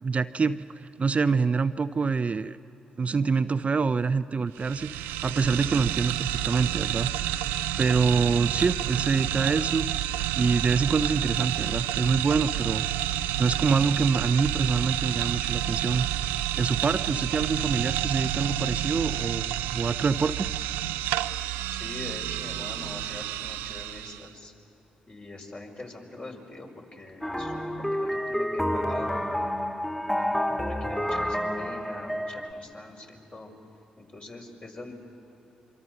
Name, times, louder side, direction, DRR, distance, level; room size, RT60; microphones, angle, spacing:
voice 1, 0.0-2.6 3.0-7.5 7.8-9.9 10.4-12.8 13.1-16.1 16.6-20.5, right 5 dB, 40° right, 12 dB, 0.6 m, -26 dB
sound 1, 4.6-24.3, right 11 dB, 85° right, 0.5 m, -29 dB
voice 2, 21.7-24.5 25.1-29.4 30.0-30.3 30.6-33.5 34.0-34.9, left 2 dB, 40° left, 0 dB, 5.0 m, -43 dB
sound 2, 27.2-32.5, equal, 10° left, 2.1 m, -29 dB
26.0 x 24.5 x 6.7 m, 2.9 s
hypercardioid pair, 45°, 3 cm